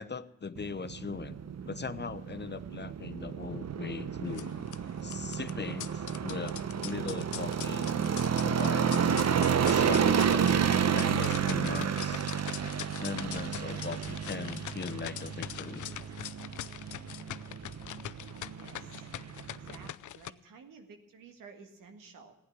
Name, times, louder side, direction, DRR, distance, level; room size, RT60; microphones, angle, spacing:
voice 1, 0.0-1.4 1.6-4.6 5.0-7.9 8.4-9.0 9.5-10.7 10.9-12.2 13.0-15.9 18.7-19.0 19.5-19.9, left 5 dB, 35° left, 12 dB, 0.9 m, -40 dB
sound 1, 0.6-19.9, right 7 dB, 55° right, 0.9 m, -31 dB
sound 2, 4.3-20.3, left 13 dB, 70° left, 0.5 m, -43 dB
voice 2, 18.3-19.1 19.5-22.3, right 4 dB, 85° right, 5 dB, 1.8 m, -53 dB
15.5 x 10.0 x 7.5 m, 0.92 s
supercardioid pair, 45°, 32 cm